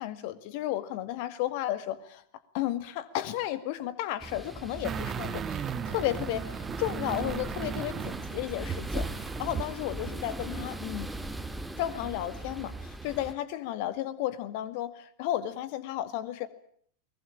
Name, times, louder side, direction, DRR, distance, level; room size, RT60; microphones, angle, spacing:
voice 1, 0.0-2.2 2.5-11.1 11.8-16.5, left 13 dB, 45° left, 14 dB, 2.0 m, -33 dB
sound 1, 4.2-13.3, right 1 dB, 5° right, 1.8 m, -39 dB
sound 2, 4.8-9.7 10.1-10.2, right 8 dB, 25° right, 1.5 m, -36 dB
22.5 x 20.5 x 8.7 m, 0.63 s
figure-of-eight pair, 90°, 0 cm